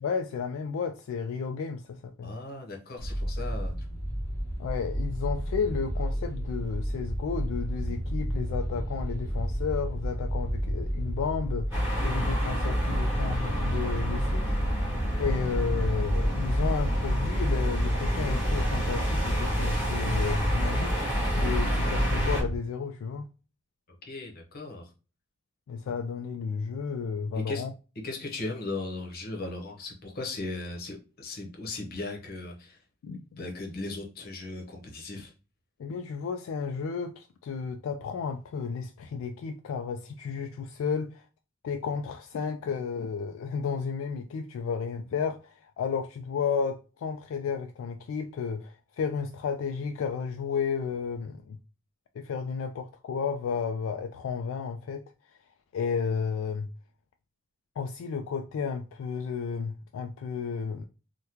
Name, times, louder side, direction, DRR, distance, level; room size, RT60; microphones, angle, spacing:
voice 1, 0.0-2.3 4.6-14.4 14.7-14.8 15.2-23.3 25.7-27.7 33.0-33.4 35.8-41.2 41.6-51.6 52.2-55.0 55.7-56.7 57.8-60.8, left 6 dB, 75° left, 0.3 m, -32 dB
voice 2, 2.2-3.8 24.0-24.9 27.5-27.6 28.0-32.8 33.4-35.3, left 2 dB, 50° left, 0.8 m, -37 dB
sound 1, 3.0-22.6, equal, 15° left, 0.8 m, -32 dB
sound 2, 11.7-22.4, equal, 10° right, 1.8 m, -28 dB
3.4 x 2.2 x 2.9 m
head